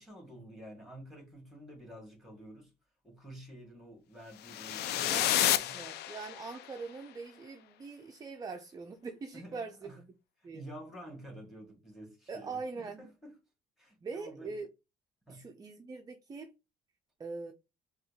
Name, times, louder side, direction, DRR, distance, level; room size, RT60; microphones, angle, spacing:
voice 1, 0.0-2.7 3.0-5.8 9.3-10.0 10.4-13.3 13.8-14.6 15.3-15.5, right 1 dB, ahead, 1.8 m, -50 dB
sound 1, 4.4-6.6, left 12 dB, 75° left, 0.4 m, -30 dB
voice 2, 5.0-10.1 10.4-10.6 12.3-13.0 14.0-14.7 15.3-16.5 17.2-17.5, right 4 dB, 20° right, 0.4 m, -42 dB
4.2 x 2.4 x 2.7 m
cardioid pair, 110°, 17 cm